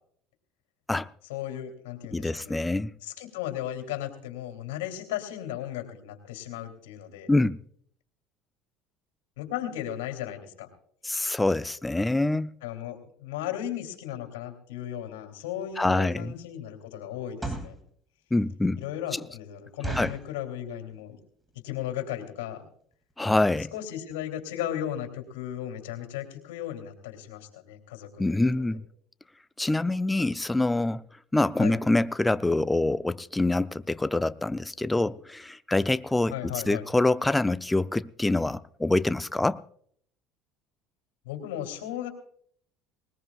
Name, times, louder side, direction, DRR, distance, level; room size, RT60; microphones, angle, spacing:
voice 1, 1.3-2.6 3.0-7.3 9.4-10.7 12.6-17.8 18.8-21.2 21.5-22.6 23.7-28.8 31.6-31.8 36.3-36.8 41.2-42.1, left 11 dB, 85° left, 2.9 m, -36 dB
voice 2, 2.1-2.9 7.3-7.6 11.0-12.5 15.8-16.3 18.3-18.8 20.0-20.1 23.2-23.7 28.2-28.8 29.6-31.0 31.3-39.6, left 2 dB, 10° left, 0.5 m, -25 dB
sound 1, 15.6-15.8 16.3-16.5 17.2-17.8 18.4-18.5 18.8-18.9 19.2-19.3 19.8-20.3 20.9-21.2 21.5-21.6 21.8-22.1 22.6-22.7 22.9-23.1 23.5-23.6 23.8-23.9, right 2 dB, 10° right, 2.5 m, -35 dB
20.0 x 20.0 x 2.4 m
supercardioid pair, 90°, 0 cm